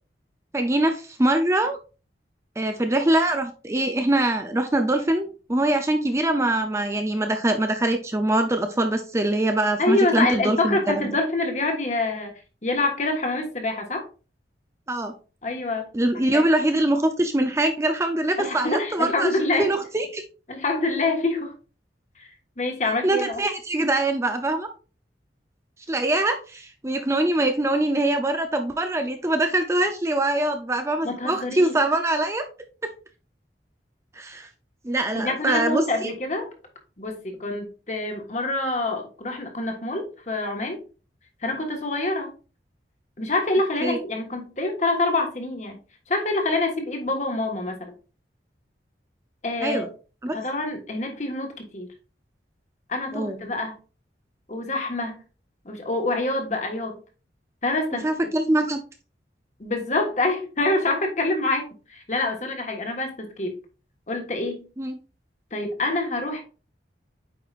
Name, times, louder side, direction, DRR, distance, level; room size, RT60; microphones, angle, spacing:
voice 1, 0.5-1.8 2.6-11.2 14.9-15.1 15.9-19.3 19.6-20.2 23.0-24.7 25.9-32.4 34.1-34.5 34.8-36.1 43.8-44.0 49.6-49.9 50.2-50.4 53.1-53.4 58.0-58.8 64.8-65.0, right 1 dB, 15° right, 0.5 m, -23 dB
voice 2, 9.8-12.3 12.6-14.1 15.4-15.9 16.3-16.4 18.4-19.7 20.5-21.5 22.2-22.3 22.6-23.4 31.0-31.7 35.1-36.5 37.0-40.8 41.4-42.3 43.2-45.8 46.1-47.9 49.4-49.8 50.3-51.9 52.9-53.7 54.5-55.1 55.6-57.0 57.6-58.1 59.6-63.6 64.1-64.6 65.5-66.4, left 2 dB, 40° left, 1.5 m, -26 dB
8.7 x 4.8 x 2.5 m
head